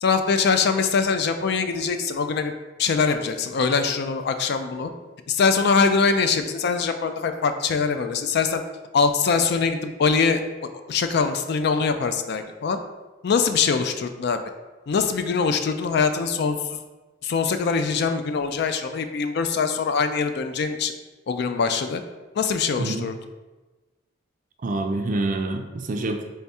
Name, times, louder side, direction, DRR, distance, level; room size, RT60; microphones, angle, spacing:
voice 1, 0.0-2.5 2.8-4.9 5.3-8.6 8.9-10.4 10.9-12.8 13.2-14.4 14.9-16.8 17.2-20.9 21.3-22.0 22.4-23.1, left 5 dB, 60° left, 8 dB, 0.4 m, -23 dB
voice 2, 22.8-23.1 24.6-26.2, right 2 dB, 40° right, 4 dB, 0.4 m, -26 dB
3.5 x 3.4 x 4.1 m, 1.2 s
head